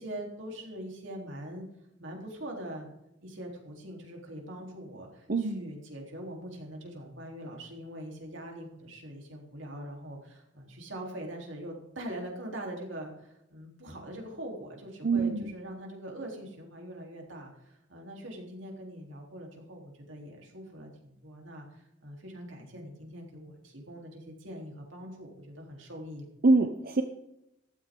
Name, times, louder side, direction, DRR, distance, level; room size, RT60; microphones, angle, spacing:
voice 1, 0.0-1.6 2.0-2.9 3.2-26.3, right 1 dB, 80° right, 0 dB, 3.8 m, -43 dB
voice 2, 5.3-5.7 15.0-15.5 26.4-27.0, right 3 dB, 50° right, 6 dB, 0.8 m, -24 dB
14.5 x 13.5 x 3.9 m, 0.83 s
head